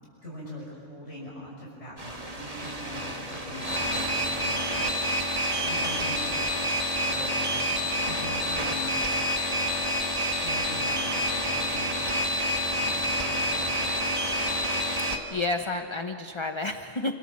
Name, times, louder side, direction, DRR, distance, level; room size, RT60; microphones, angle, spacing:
voice 1, 0.2-4.9 5.6-9.7 10.4-12.4 12.7-14.3, left 1 dB, 80° left, -5 dB, 6.2 m, -42 dB
sound 1, 2.0-15.2, equal, 35° right, 2.3 m, -28 dB
voice 2, 15.0-17.1, left 2 dB, 25° left, 6 dB, 1.0 m, -31 dB
28.5 x 26.0 x 7.4 m, 2.6 s
omnidirectional pair, 1.1 m